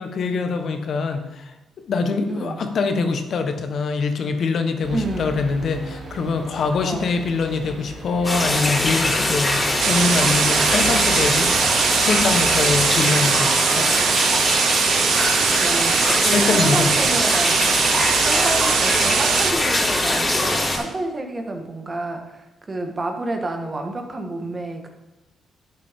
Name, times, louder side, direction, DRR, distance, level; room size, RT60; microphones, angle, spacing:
voice 1, 0.0-1.5 1.9-13.9 16.3-16.9, left 4 dB, 60° left, 6 dB, 1.2 m, -24 dB
voice 2, 2.3-2.6 4.9-5.4 6.8-7.1 15.1-17.7 18.2-24.9, right 2 dB, 30° right, 4 dB, 1.7 m, -29 dB
sound 1, 4.8-12.9, right 2 dB, 55° right, 2.9 m, -36 dB
sound 2, 8.2-20.8, left 1 dB, 20° left, 4.1 m, -22 dB
sound 3, 9.8-19.5, right 9 dB, 75° right, 0.5 m, -21 dB
11.0 x 8.2 x 3.7 m, 1.0 s
cardioid pair, 80°, 0 cm